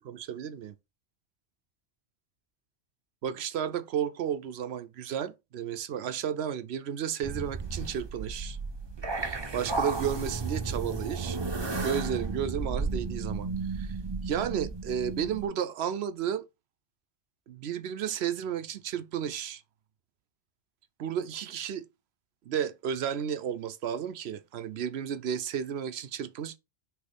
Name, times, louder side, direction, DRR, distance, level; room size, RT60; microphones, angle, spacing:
voice 1, 0.0-0.7 3.2-8.6 9.2-11.4 11.8-14.0 14.2-16.5 17.5-19.6 21.0-21.9 22.5-26.6, right 8 dB, 70° right, 0.8 m, -33 dB
sound 1, 7.2-15.5, right 4 dB, 25° right, 0.7 m, -33 dB
6.1 x 3.1 x 5.1 m
omnidirectional pair, 1.2 m